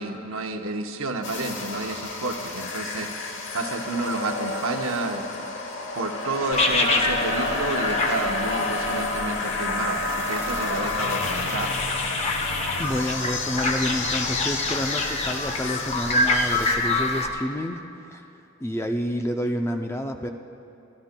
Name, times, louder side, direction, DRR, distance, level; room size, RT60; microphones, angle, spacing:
voice 1, 0.0-5.5 5.9-11.7, right 3 dB, 70° right, 4 dB, 0.9 m, -30 dB
sound 1, 1.2-16.7, left 3 dB, 60° left, 1.0 m, -30 dB
sound 2, 6.5-17.3, left 2 dB, 30° left, 0.8 m, -27 dB
voice 2, 12.8-18.2 18.6-20.3, equal, 10° left, 5 dB, 0.4 m, -29 dB
28.5 x 13.0 x 2.2 m, 2.7 s
head